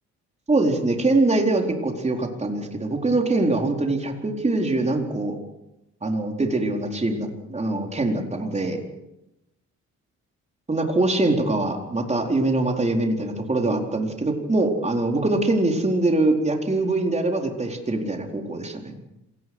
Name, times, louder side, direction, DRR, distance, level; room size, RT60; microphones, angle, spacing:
voice 1, 0.5-5.4 6.0-8.8 10.7-18.9, right 2 dB, 20° right, 2 dB, 4.3 m, -23 dB
26.5 x 18.5 x 6.3 m, 0.90 s
cardioid pair, 90°, 30 cm